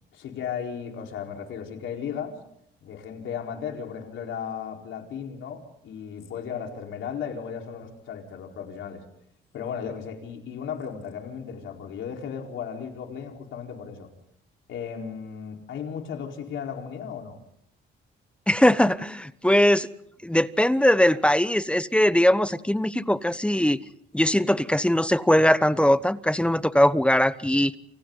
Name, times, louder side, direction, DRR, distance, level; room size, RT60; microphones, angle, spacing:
voice 1, 0.1-2.4 2.8-9.0 9.5-14.1 14.7-17.4, left 7 dB, 75° left, 2 dB, 4.5 m, -35 dB
voice 2, 18.5-19.9 20.2-23.8 24.1-27.8, left 1 dB, 5° left, 14 dB, 1.0 m, -21 dB
29.0 x 28.5 x 4.0 m, 0.71 s
cardioid pair, 90°, 20 cm